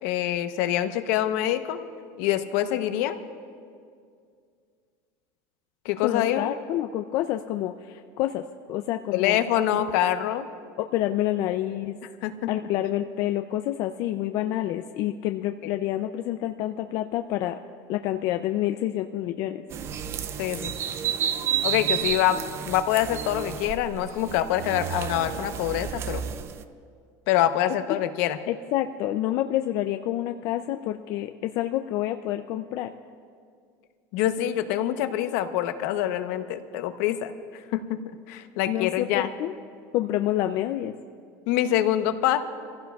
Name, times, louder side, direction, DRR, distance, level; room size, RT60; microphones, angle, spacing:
voice 1, 0.0-1.8 2.2-3.2 5.8-6.5 9.1-10.5 12.2-12.5 15.6-15.7 20.4-20.7 21.6-22.4 22.7-26.2 27.3-28.4 34.1-38.0 38.3-39.3 41.5-42.4, left 12 dB, 70° left, 9 dB, 0.9 m, -25 dB
voice 2, 6.0-9.4 10.8-12.0 12.5-17.6 17.9-19.6 27.9-28.0 28.5-32.9 38.7-39.5 39.9-40.9, left 13 dB, 45° left, 7 dB, 0.4 m, -28 dB
sound 1, 19.7-26.6, right 9 dB, 30° right, 0.4 m, -31 dB
27.0 x 15.5 x 2.4 m, 2.2 s
cardioid pair, 175°, 9 cm